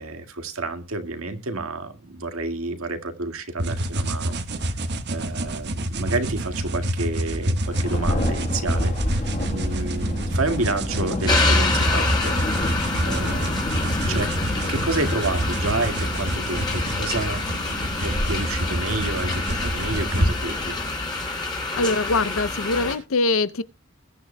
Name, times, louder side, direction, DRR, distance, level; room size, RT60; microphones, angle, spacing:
voice 1, 0.0-4.4 5.1-12.4 13.0-14.3 14.7-20.8, right 3 dB, 75° right, 2.0 m, -30 dB
sound 1, 3.6-20.3, right 1 dB, 55° right, 1.3 m, -28 dB
Thunder, 7.6-21.2, left 1 dB, 35° left, 1.3 m, -31 dB
sound 2, 11.3-22.9, left 2 dB, 20° left, 4.0 m, -27 dB
voice 2, 21.7-23.6, left 3 dB, 65° left, 0.6 m, -23 dB
21.0 x 9.7 x 2.2 m
head